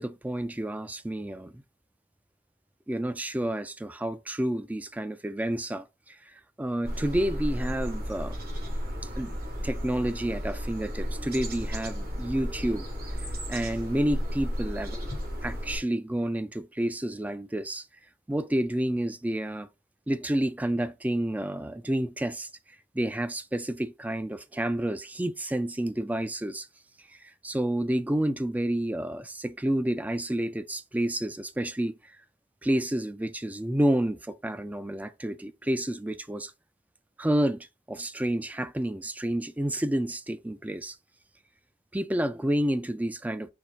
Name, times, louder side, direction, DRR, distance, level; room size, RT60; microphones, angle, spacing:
voice 1, 0.0-1.6 2.9-8.3 9.2-9.3 9.6-12.9 13.5-15.0 15.4-17.9 18.3-19.7 20.1-22.5 22.9-26.7 27.1-32.1 32.6-36.5 37.2-41.0 41.9-43.5, right 1 dB, 10° right, 0.3 m, -29 dB
sound 1, 6.8-15.8, equal, 55° right, 1.7 m, -33 dB
4.6 x 2.7 x 4.0 m
head